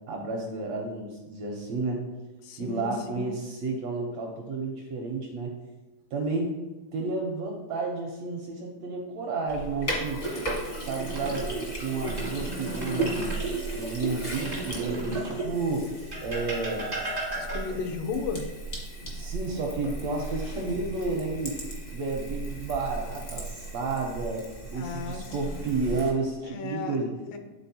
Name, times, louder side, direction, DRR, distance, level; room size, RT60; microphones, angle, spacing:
voice 1, 0.1-2.0 2.6-5.5 6.1-6.6 6.9-10.2 10.8-13.3 13.7-15.9 16.2-16.9 17.7-17.8 19.1-21.6 21.9-27.2, right 3 dB, 75° right, 0 dB, 1.6 m, -31 dB
voice 2, 2.4-3.3 17.4-18.5 24.7-25.6 26.4-27.0 27.3-27.4, left 5 dB, 85° left, 6 dB, 2.3 m, -35 dB
Sink (filling or washing), 9.5-26.1, right 2 dB, 55° left, 0.6 m, -35 dB
sound 1, 10.2-11.5 11.9-13.4 14.3-15.5 16.1-17.9 19.8-20.5 20.9-21.1 24.0-24.6 25.4-26.0, right 1 dB, 45° right, 0.5 m, -37 dB
10.5 x 4.0 x 2.7 m, 1.2 s
omnidirectional pair, 3.7 m